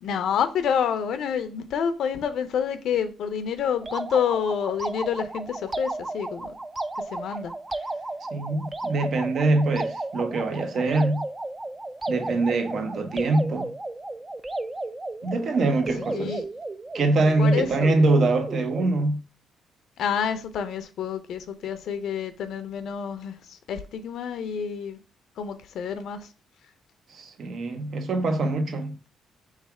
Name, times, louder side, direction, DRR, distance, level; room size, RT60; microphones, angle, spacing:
voice 1, 0.0-6.5 7.1-7.5 16.1-16.4 17.4-17.9 20.0-25.0 25.4-26.2, left 7 dB, 75° left, 0.5 m, -28 dB
sound 1, 3.8-19.0, right 2 dB, 20° right, 0.4 m, -34 dB
voice 2, 8.3-11.3 12.1-13.7 15.2-16.4 16.9-19.2 27.1-28.9, right 2 dB, 60° right, 0.7 m, -24 dB
3.5 x 3.2 x 4.6 m
cardioid pair, 90°, 0 cm